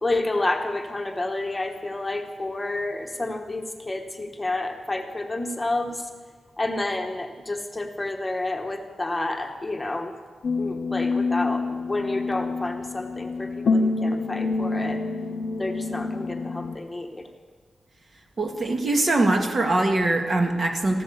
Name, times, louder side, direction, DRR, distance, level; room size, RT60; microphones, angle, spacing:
voice 1, 0.0-6.1 6.6-10.1 10.6-15.0 15.6-17.3, left 2 dB, 20° left, 4 dB, 1.3 m, -29 dB
sound 1, 10.4-16.8, left 3 dB, 70° left, 0.7 m, -27 dB
voice 2, 18.4-21.0, right 2 dB, 45° right, 3 dB, 1.9 m, -22 dB
14.5 x 12.0 x 6.9 m, 1.5 s
wide cardioid pair, 100°, 0 cm